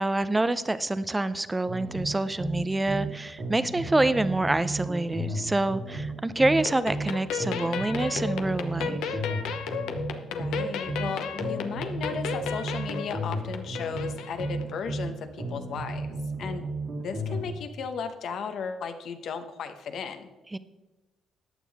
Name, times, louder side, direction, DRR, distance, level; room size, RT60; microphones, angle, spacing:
voice 1, 0.0-9.2 20.5-20.6, right 2 dB, 15° right, 14 dB, 0.6 m, -27 dB
sound 1, 1.7-3.1 3.4-7.1 7.4-11.1 11.4-15.1 15.4-17.5, right 2 dB, 60° right, 3.0 m, -33 dB
sound 2, 6.6-14.7, left 6 dB, 90° left, 0.8 m, -34 dB
voice 2, 10.3-16.7 17.0-20.3, left 6 dB, 70° left, 8 dB, 1.1 m, -35 dB
14.5 x 9.2 x 3.5 m, 1.1 s
cardioid pair, 90°, 0 cm